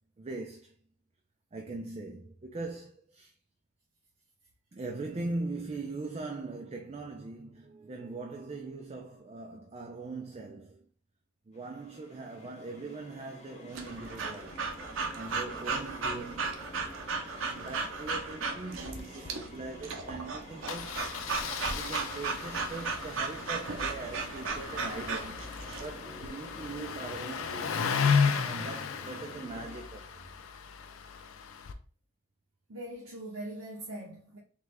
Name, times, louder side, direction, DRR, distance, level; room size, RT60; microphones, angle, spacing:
voice 1, 0.2-0.7 1.5-3.3 4.7-10.9 11.5-14.6 15.1-16.6 17.4-21.0 21.7-25.4 25.8-30.3, right 3 dB, 30° right, 0.3 m, -41 dB
sound 1, 11.5-29.9, left 1 dB, 30° left, 0.6 m, -49 dB
Breathing / Dog, 13.7-25.9, right 4 dB, 65° right, 0.6 m, -36 dB
Engine starting, 18.7-19.0 19.3-19.4 19.6-19.8 20.7-31.7, left 6 dB, 70° left, 0.4 m, -34 dB
voice 2, 32.7-34.4, right 1 dB, 90° right, 1.0 m, -41 dB
3.7 x 3.2 x 3.3 m
head